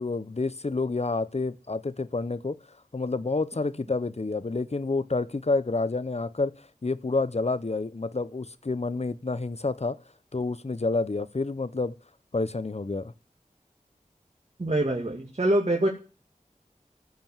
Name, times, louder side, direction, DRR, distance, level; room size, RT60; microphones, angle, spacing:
voice 1, 0.0-2.6 2.9-6.5 6.8-10.0 10.3-11.9 12.3-13.1, left 3 dB, 50° left, 0.8 m, -29 dB
voice 2, 14.6-15.9, right 1 dB, 50° right, 2.4 m, -24 dB
15.0 x 5.2 x 7.4 m
wide cardioid pair, 40°, 14 cm